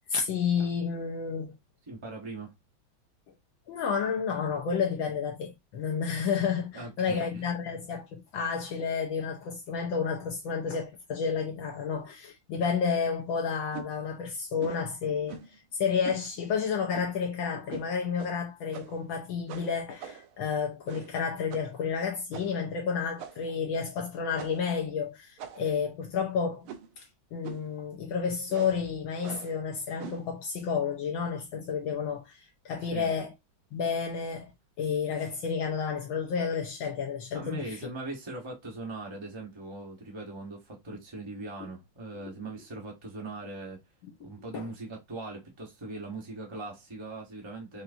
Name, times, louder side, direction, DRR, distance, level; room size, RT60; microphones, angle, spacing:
voice 1, 0.1-1.5 3.7-15.4 15.7-26.7 27.0-27.1 27.3-33.3 33.7-34.5 34.8-37.8 44.2-44.3 44.5-44.7, left 6 dB, 75° left, 1.5 m, -31 dB
voice 2, 1.9-2.5 6.7-7.5 32.8-33.1 37.3-43.8 44.2-47.8, right 2 dB, 25° right, 0.6 m, -40 dB
sound 1, 13.7-13.9 14.6-14.8 15.3-15.6 16.0-16.2 16.9-17.2 17.7-17.9 18.2-18.3 18.7-19.1 19.5-20.4 20.9-21.2 21.5-21.7 22.3-22.6 23.2-23.6 24.4-24.7 25.4-25.8 26.6-27.0 27.4-27.7 28.5-28.8 29.2-29.6 30.0-30.3, right 7 dB, 85° right, 1.6 m, -43 dB
5.6 x 2.6 x 2.6 m
omnidirectional pair, 2.3 m